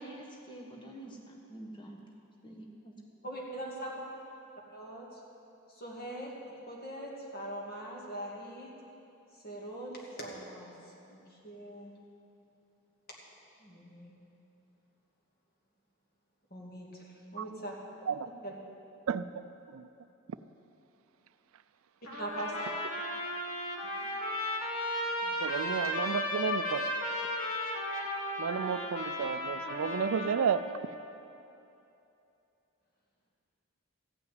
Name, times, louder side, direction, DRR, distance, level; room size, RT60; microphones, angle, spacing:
voice 1, 0.0-2.0 2.4-2.9, right 1 dB, 20° left, 0 dB, 1.3 m, -47 dB
voice 2, 3.2-3.9 4.7-5.2 5.7-6.3 6.7-8.7 9.3-11.9 13.6-14.1 16.5-17.7 18.4-18.5 22.2-22.6 24.0-24.1 25.2-25.4, right 1 dB, 40° left, -3 dB, 2.4 m, -42 dB
voice 3, 19.1-19.9 25.4-26.9 28.4-30.6, right 7 dB, 70° right, 13 dB, 0.4 m, -32 dB
Trumpet, 22.1-30.7, left 1 dB, 70° left, 1.7 m, -35 dB
14.5 x 5.8 x 9.3 m, 2.8 s
head